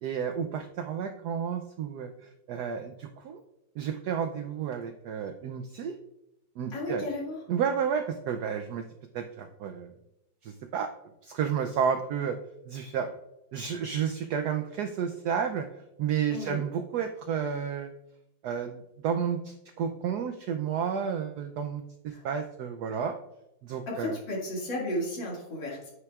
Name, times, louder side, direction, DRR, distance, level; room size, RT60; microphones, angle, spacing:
voice 1, 0.0-3.4 3.8-6.0 6.6-7.0 7.5-8.9 9.1-9.9 10.4-10.9 11.2-12.4 12.7-13.1 13.5-15.7 16.0-17.9 18.4-23.1 23.6-24.2, right 7 dB, 75° right, 7 dB, 0.9 m, -31 dB
voice 2, 6.7-7.4 16.3-16.6 22.1-22.2 23.9-25.9, left 1 dB, 65° left, -4 dB, 2.8 m, -33 dB
9.3 x 5.9 x 2.4 m, 0.86 s
omnidirectional pair, 2.1 m